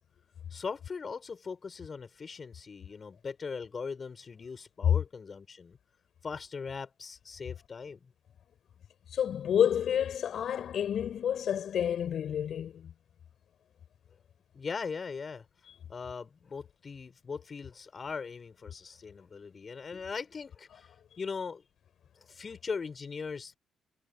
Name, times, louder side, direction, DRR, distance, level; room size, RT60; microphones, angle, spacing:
voice 1, 0.5-5.8 6.2-8.0 14.5-15.5 15.9-21.6 22.2-23.5, left 5 dB, 45° left, 6.1 m, -40 dB
voice 2, 9.1-12.9, left 9 dB, 65° left, 7.9 m, -29 dB
supercardioid pair, 55°, 0 cm